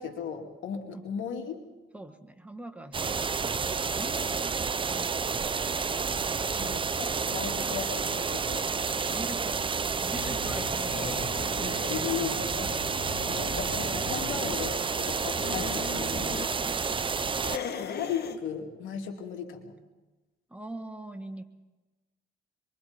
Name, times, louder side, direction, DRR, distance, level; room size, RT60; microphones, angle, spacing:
voice 1, 0.0-1.6 6.6-9.0 11.6-12.7 13.2-16.4 17.8-19.7, left 7 dB, 80° left, 2 dB, 2.9 m, -36 dB
voice 2, 1.9-5.8 6.4-6.8 9.1-12.4 16.6-17.1 20.5-21.5, right 1 dB, 5° right, 6 dB, 1.5 m, -43 dB
sound 1, 2.9-17.6, right 5 dB, 25° right, 0.6 m, -30 dB
sound 2, 10.1-14.6 15.2-16.5 17.4-18.4, left 6 dB, 55° left, 1.7 m, -39 dB
27.0 x 23.5 x 4.4 m, 1.2 s
cardioid pair, 90°, 20 cm